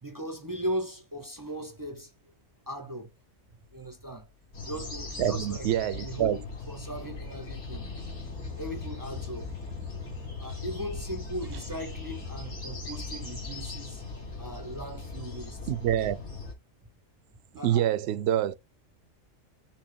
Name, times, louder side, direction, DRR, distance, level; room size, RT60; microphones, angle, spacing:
voice 1, 0.0-2.1 2.7-3.1 3.7-4.3 4.6-7.9 8.6-9.5 10.4-14.0 14.4-15.7 17.6-17.9, equal, 25° right, 0.5 m, -38 dB
sound 1, 3.7-3.9 7.7-14.5, left 5 dB, 85° left, 1.2 m, -44 dB
sound 2, 4.5-16.5, left 3 dB, 60° left, 2.4 m, -39 dB
voice 2, 5.2-6.4 15.7-16.2 17.6-18.5, right 11 dB, 65° right, 0.8 m, -26 dB
6.1 x 2.2 x 3.7 m
omnidirectional pair, 1.3 m